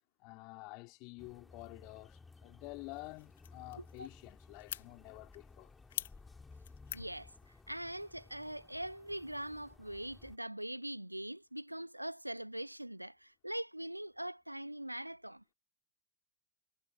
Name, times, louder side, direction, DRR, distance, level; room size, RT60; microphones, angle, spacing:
voice 1, 0.2-5.7, left 28 dB, 45° left, 3.3 m, -49 dB
sound 1, 1.2-10.4, left 4 dB, 10° left, 2.5 m, -58 dB
sound 2, 2.9-8.8, left 11 dB, 60° left, 1.9 m, -49 dB
voice 2, 3.7-4.1 6.9-7.3 7.7-15.4, right 1 dB, 90° right, 0.7 m, -42 dB
figure-of-eight pair, 90°, 0 cm